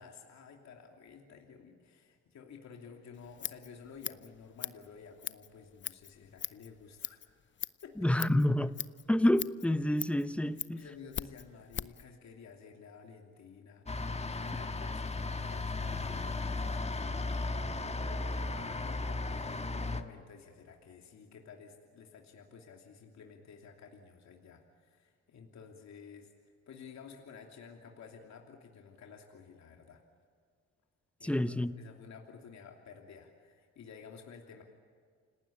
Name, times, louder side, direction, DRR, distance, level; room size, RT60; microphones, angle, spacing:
voice 1, 0.0-7.3 7.8-8.1 10.7-30.0 31.2-34.6, left 6 dB, 65° left, 3.0 m, -52 dB
Scissors, 3.1-12.1, left 8 dB, 40° left, 0.7 m, -42 dB
voice 2, 8.0-8.7 9.1-10.8 31.2-31.7, left 1 dB, 5° left, 1.0 m, -28 dB
sound 1, 13.9-20.0, left 3 dB, 20° left, 1.5 m, -35 dB
29.0 x 19.0 x 8.6 m
cardioid pair, 90°, 30 cm